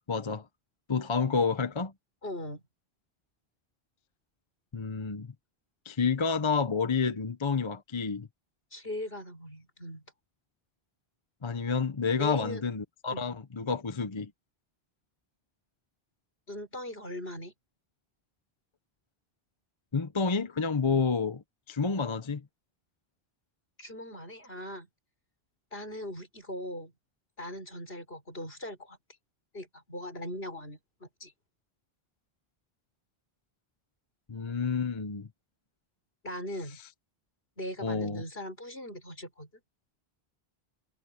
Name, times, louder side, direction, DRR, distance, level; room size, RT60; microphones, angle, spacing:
voice 1, 0.1-0.5 0.9-1.9 4.7-5.3 5.9-8.3 11.4-14.3 19.9-21.4 21.7-22.4 34.3-35.3 37.8-38.2, left 5 dB, 30° left, 0.8 m, -29 dB
voice 2, 2.2-2.6 8.7-10.0 12.2-12.6 13.1-13.3 16.5-17.5 23.8-24.9 25.7-26.9 27.4-29.0 29.5-31.3 36.2-36.8 37.6-39.6, left 1 dB, 70° left, 6.6 m, -39 dB
omnidirectional pair, 1.0 m